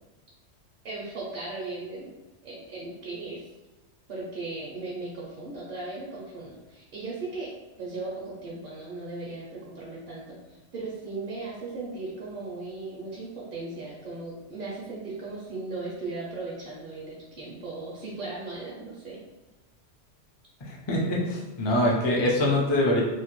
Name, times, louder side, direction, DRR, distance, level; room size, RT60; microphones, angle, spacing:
voice 1, 0.8-2.1 2.4-3.5 4.1-7.5 7.8-19.2, right 3 dB, 55° right, -6 dB, 0.7 m, -37 dB
voice 2, 20.6-23.0, left 1 dB, 40° left, -3 dB, 0.4 m, -24 dB
2.7 x 2.1 x 3.0 m, 1.1 s
omnidirectional pair, 1.2 m